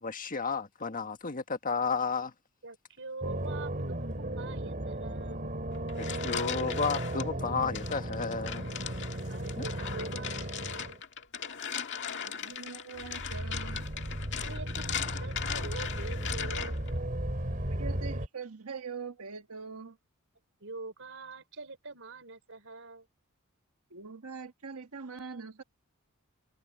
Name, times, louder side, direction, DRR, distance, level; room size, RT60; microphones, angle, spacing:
voice 1, 0.0-2.3 6.0-8.7 9.6-9.7, left 5 dB, 40° left, 1.6 m, -32 dB
voice 2, 2.6-5.4 9.3-11.0 14.4-16.8 20.6-23.1, right 3 dB, 60° right, 5.0 m, -44 dB
sound 1, 3.2-11.0 13.0-18.3, right 1 dB, 40° right, 3.7 m, -35 dB
sound 2, 5.7-7.3 7.7-16.9, left 8 dB, 55° left, 2.0 m, -39 dB
voice 3, 12.2-13.8 17.8-20.0 23.9-25.6, right 5 dB, 75° right, 1.4 m, -42 dB
head